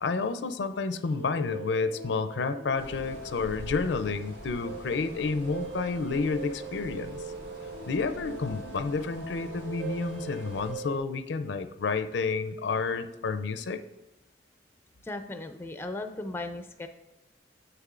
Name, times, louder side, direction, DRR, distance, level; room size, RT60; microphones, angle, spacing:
voice 1, 0.0-7.2 7.9-13.8, left 4 dB, 75° left, 11 dB, 0.4 m, -30 dB
sound 1, 0.9-11.0, right 4 dB, 85° right, 0.9 m, -42 dB
sound 2, 2.8-10.7, equal, 65° right, 1.5 m, -46 dB
voice 2, 15.0-16.9, left 2 dB, 15° left, 7 dB, 0.4 m, -37 dB
7.0 x 6.7 x 2.4 m, 1.0 s
head